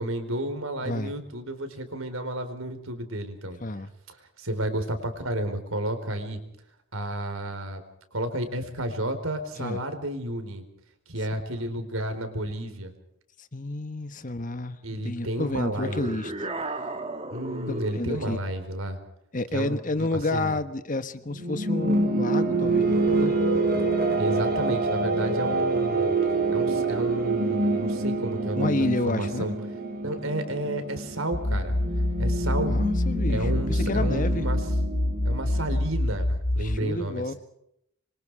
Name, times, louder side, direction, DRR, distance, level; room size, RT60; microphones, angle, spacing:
voice 1, 0.0-3.6 4.4-6.4 6.9-7.8 8.1-10.6 11.1-12.9 14.8-16.1 17.3-19.0 19.5-20.6 24.2-26.1 26.5-28.8 29.1-29.5 30.0-31.7 32.2-32.8 33.3-34.6 35.2-37.4, right 1 dB, 70° right, 8 dB, 4.4 m, -31 dB
voice 2, 13.4-16.3 17.9-18.4 19.3-23.4 23.7-23.8 28.6-29.5 32.5-34.5 36.6-37.3, left 2 dB, 35° left, 10 dB, 1.3 m, -30 dB
sound 1, 15.8-18.1, right 2 dB, 30° right, 2.1 m, -34 dB
sound 2, 21.3-35.9, right 2 dB, 45° right, 4.3 m, -27 dB
sound 3, 31.3-36.8, left 1 dB, 75° left, 2.2 m, -26 dB
26.5 x 24.0 x 4.9 m, 0.77 s
head